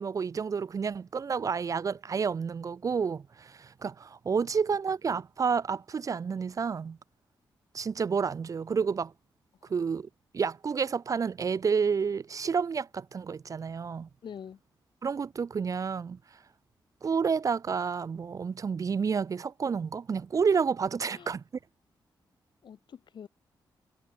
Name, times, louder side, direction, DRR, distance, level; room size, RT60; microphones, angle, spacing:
voice 1, 0.0-7.0 7.7-9.1 9.7-10.1 10.3-14.1 15.0-16.2 17.0-21.4, right 6 dB, 45° right, 0.4 m, -30 dB
voice 2, 14.2-14.6 21.1-21.3 22.6-23.3, left 8 dB, 70° left, 1.8 m, -45 dB
cardioid pair, 95°, 8 cm